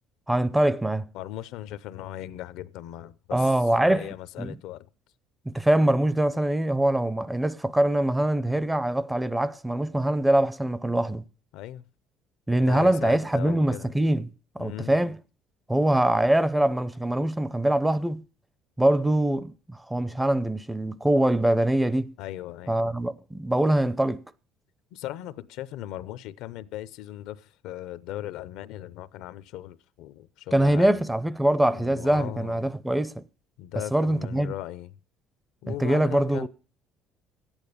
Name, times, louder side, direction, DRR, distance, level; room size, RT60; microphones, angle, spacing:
voice 1, 0.3-1.1 3.3-4.1 4.4-4.6 5.5-11.2 12.5-15.2 15.7-18.2 18.8-22.1 22.7-24.2 30.5-33.2 33.9-34.5 35.7-36.5, right 1 dB, 5° right, 0.5 m, -23 dB
voice 2, 1.1-4.9 11.5-11.9 12.6-13.9 14.6-15.0 22.2-22.8 24.9-31.0 31.7-32.6 33.6-34.9 35.6-36.5, left 13 dB, 80° left, 0.6 m, -38 dB
12.0 x 8.9 x 6.7 m
cardioid pair, 115°, 0 cm